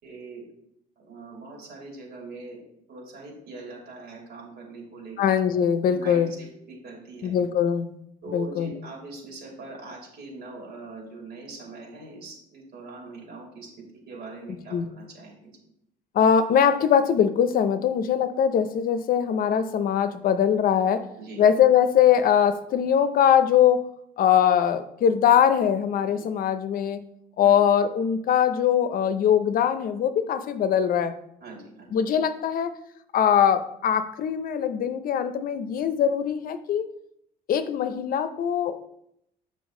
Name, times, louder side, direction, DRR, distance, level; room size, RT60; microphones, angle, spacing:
voice 1, 0.0-0.5 1.0-2.6 2.9-5.2 5.9-7.4 8.2-15.7 21.2-21.4 26.1-26.3 27.4-27.6 31.4-31.9, right 3 dB, 70° right, -1 dB, 2.9 m, -42 dB
voice 2, 5.2-6.3 7.2-7.9 8.3-8.7 14.7-14.8 16.1-21.1 21.4-23.9 24.2-27.0 27.4-31.1 31.9-32.7 33.1-36.9 37.5-38.8, left 8 dB, 60° left, 11 dB, 0.6 m, -22 dB
7.2 x 5.4 x 3.7 m, 0.76 s
cardioid pair, 110°, 17 cm